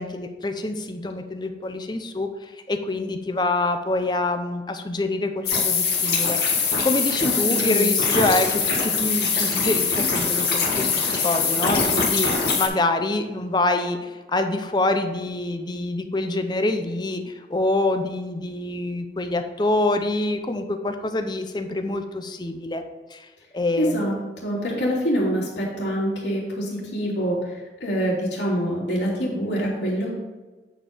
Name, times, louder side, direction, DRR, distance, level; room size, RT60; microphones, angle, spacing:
voice 1, 0.0-6.4 6.8-22.8 23.1-23.3 23.5-24.1, left 2 dB, 25° left, 6 dB, 0.6 m, -26 dB
sound 1, 5.4-12.7, left 5 dB, 65° left, 1.8 m, -22 dB
voice 2, 7.2-8.0 23.8-24.1 24.4-30.1, equal, 90° left, -5 dB, 2.8 m, -25 dB
8.9 x 4.4 x 5.0 m, 1.2 s
head